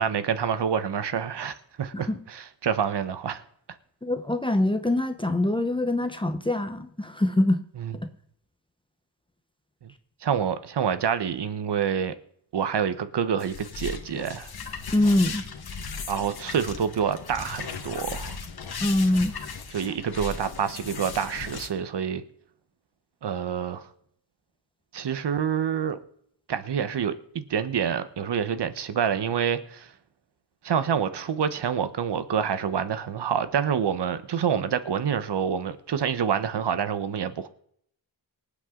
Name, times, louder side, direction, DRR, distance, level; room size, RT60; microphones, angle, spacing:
voice 1, 0.0-3.4 7.8-8.0 9.8-9.9 10.2-12.1 12.5-14.5 16.1-18.4 19.7-22.2 23.2-23.9 24.9-26.0 26.5-29.9 30.6-37.5, right 7 dB, 65° right, 1.1 m, -27 dB
voice 2, 4.0-7.6 14.9-15.4 18.8-19.3, left 1 dB, 10° left, 0.8 m, -24 dB
sound 1, 13.4-21.7, left 5 dB, 55° left, 1.4 m, -37 dB
25.0 x 8.3 x 3.8 m
wide cardioid pair, 175°, 44 cm